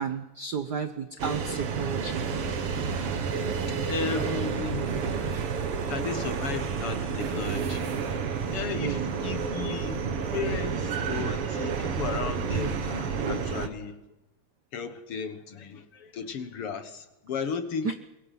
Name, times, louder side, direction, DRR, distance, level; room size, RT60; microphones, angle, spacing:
voice 1, 0.0-2.2 8.7-9.2 17.8-17.9, right 6 dB, 90° right, 9 dB, 0.9 m, -32 dB
sound 1, 1.2-13.7, right 6 dB, 50° right, 2.3 m, -30 dB
voice 2, 3.7-5.0 5.9-8.2 8.5-10.0 10.3-14.0 14.7-17.9, left 6 dB, 55° left, 10 dB, 2.1 m, -35 dB
27.5 x 22.5 x 5.8 m, 0.95 s
omnidirectional pair, 3.5 m